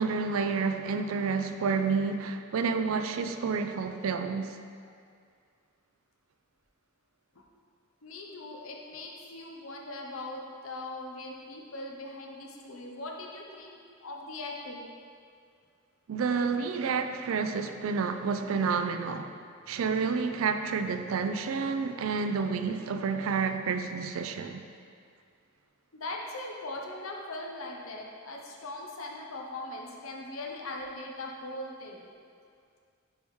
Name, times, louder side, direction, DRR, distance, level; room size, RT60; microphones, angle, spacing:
voice 1, 0.0-4.6 16.1-19.4 19.7-24.6, right 5 dB, 80° right, 0.4 m, -29 dB
voice 2, 8.0-14.9 25.9-32.0, left 2 dB, 80° left, 0.8 m, -40 dB
9.3 x 3.5 x 3.1 m
head